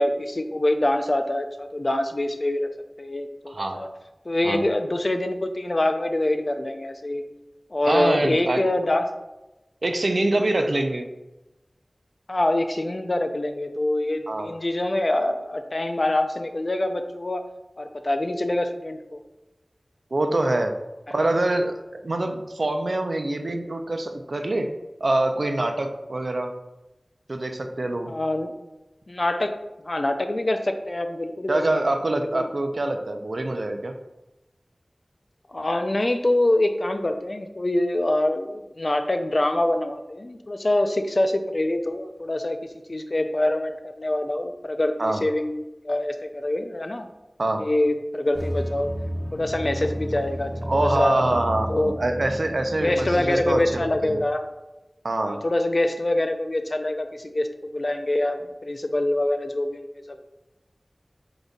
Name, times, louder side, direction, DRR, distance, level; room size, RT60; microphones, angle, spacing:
voice 1, 0.0-2.7 3.0-3.9 4.3-7.2 7.7-9.1 12.3-17.4 17.8-19.2 21.2-21.3 28.1-28.5 29.1-29.5 29.8-31.6 32.2-32.5 35.5-42.6 42.9-47.1 47.6-48.9 49.3-50.5 50.8-51.4 51.7-51.9 52.8-54.5 55.2-57.5 57.7-59.8 60.1-60.3, left 1 dB, 50° left, 6 dB, 0.4 m, -25 dB
voice 2, 3.5-3.8 4.4-4.6 7.8-8.6 9.8-11.1 14.3-14.5 20.1-20.7 21.1-24.7 25.0-26.5 27.3-28.1 31.5-33.9 45.0-45.2 47.4-47.6 50.7-54.2 55.0-55.4, right 2 dB, 70° right, 5 dB, 0.4 m, -25 dB
sound 1, 48.4-54.2, equal, 15° left, 0.7 m, -32 dB
5.1 x 3.9 x 2.4 m, 0.99 s
wide cardioid pair, 55°, 0 cm